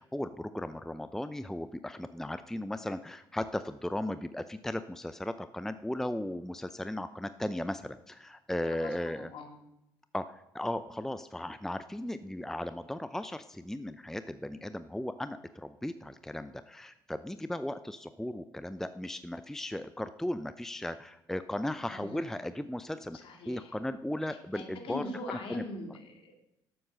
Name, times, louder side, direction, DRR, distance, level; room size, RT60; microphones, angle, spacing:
voice 1, 0.0-9.3 10.1-23.2 23.5-25.6, left 1 dB, 5° left, 12 dB, 0.6 m, -36 dB
voice 2, 8.7-9.6 21.9-22.3 23.2-23.8 24.5-26.3, left 2 dB, 55° left, 2 dB, 2.5 m, -42 dB
12.0 x 7.8 x 6.5 m, 0.86 s
hypercardioid pair, 50°, 11 cm